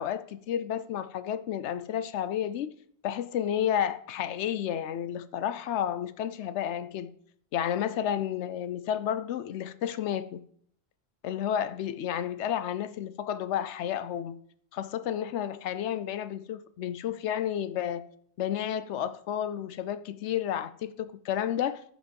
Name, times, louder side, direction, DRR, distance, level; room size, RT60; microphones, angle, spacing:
voice 1, 0.0-2.7 3.0-7.1 7.5-10.4 11.2-14.3 14.7-18.0 18.4-21.8, left 10 dB, 90° left, 0.9 m, -31 dB
14.5 x 5.1 x 5.3 m
omnidirectional pair, 1.1 m